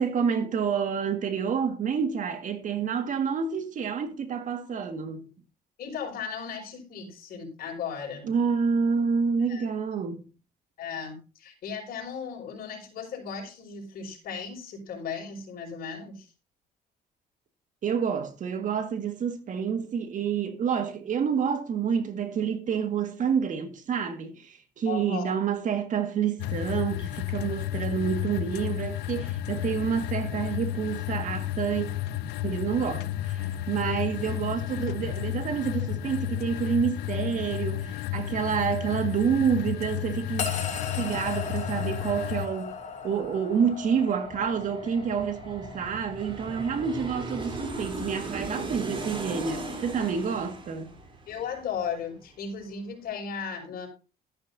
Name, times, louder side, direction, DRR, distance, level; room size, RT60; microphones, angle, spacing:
voice 1, 0.0-5.3 8.2-10.2 17.8-31.9 32.4-40.6 41.0-42.8 43.0-50.9, right 6 dB, 50° right, 1.9 m, -28 dB
voice 2, 5.8-8.3 9.5-9.6 10.8-16.3 24.9-25.3 51.3-53.9, left 6 dB, 60° left, 5.6 m, -36 dB
sound 1, 26.4-42.5, left 13 dB, 80° left, 0.5 m, -32 dB
sound 2, 40.4-50.7, left 6 dB, 45° left, 3.0 m, -39 dB
Aircraft, 40.6-40.7 41.0-52.3 52.6-52.7, right 2 dB, 30° right, 3.6 m, -39 dB
13.0 x 11.5 x 2.7 m
cardioid pair, 110°, 17 cm